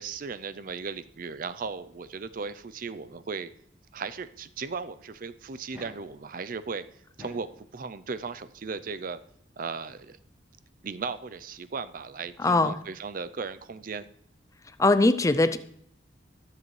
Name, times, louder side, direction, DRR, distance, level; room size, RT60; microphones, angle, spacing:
voice 1, 0.0-3.5 3.9-6.8 7.2-9.2 9.6-10.2 10.8-14.1, right 5 dB, 45° right, 14 dB, 0.5 m, -36 dB
sound 1, 5.7-6.1 7.0-7.6 8.9-9.0 10.8-10.9 11.1-11.2, left 1 dB, 10° right, 5.0 m, -48 dB
voice 2, 12.4-12.8 14.8-15.6, left 2 dB, 15° left, 11 dB, 0.4 m, -21 dB
20.5 x 7.6 x 3.2 m, 0.69 s
head